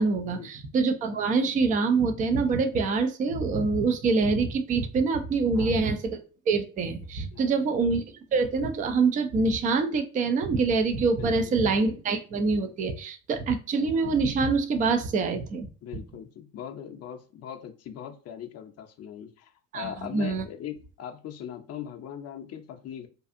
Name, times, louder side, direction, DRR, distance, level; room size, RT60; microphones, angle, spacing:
voice 1, 0.0-6.2 6.5-8.0 8.3-15.7 19.7-20.5, right 4 dB, 20° right, 0.3 m, -25 dB
voice 2, 7.3-7.6 11.2-11.6 15.8-23.1, left 9 dB, 35° left, 0.5 m, -40 dB
2.6 x 2.3 x 2.5 m
hypercardioid pair, 70°, 47 cm